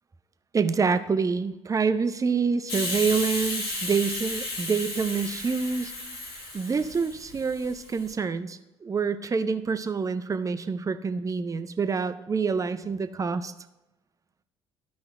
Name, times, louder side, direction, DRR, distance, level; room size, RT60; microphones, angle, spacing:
voice 1, 0.5-5.9 6.5-13.5, right 5 dB, 25° right, 10 dB, 0.6 m, -27 dB
Hiss, 2.7-8.1, left 2 dB, 75° left, 1.6 m, -34 dB
14.0 x 5.2 x 2.4 m, 0.97 s
figure-of-eight pair, 50°, 13 cm